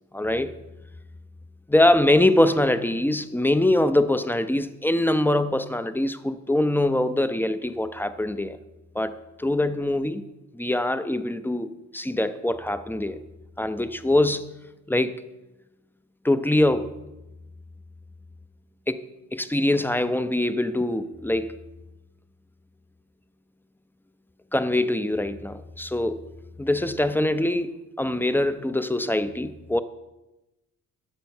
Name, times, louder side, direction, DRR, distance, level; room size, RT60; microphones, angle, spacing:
voice 1, 0.1-0.5 1.7-8.6 8.9-10.2 10.5-13.2 13.6-14.5 14.9-15.2 16.2-17.0 18.9-19.0 19.3-21.6 24.5-26.3 26.6-29.8, left 1 dB, 5° left, 0.5 m, -23 dB
9.0 x 6.4 x 5.4 m
cardioid pair, 90°, 30 cm